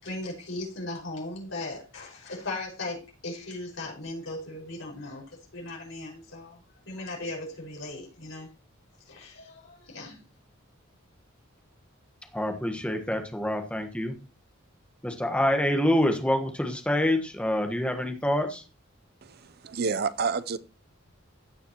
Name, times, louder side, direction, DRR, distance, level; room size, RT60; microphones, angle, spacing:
voice 1, 0.0-6.6 6.9-8.5 9.1-10.2, left 2 dB, 70° left, 5.4 m, -38 dB
voice 2, 12.3-14.1 15.0-18.6, left 1 dB, 5° left, 1.3 m, -26 dB
voice 3, 19.2-20.6, right 5 dB, 50° right, 0.6 m, -29 dB
16.0 x 6.8 x 3.0 m
head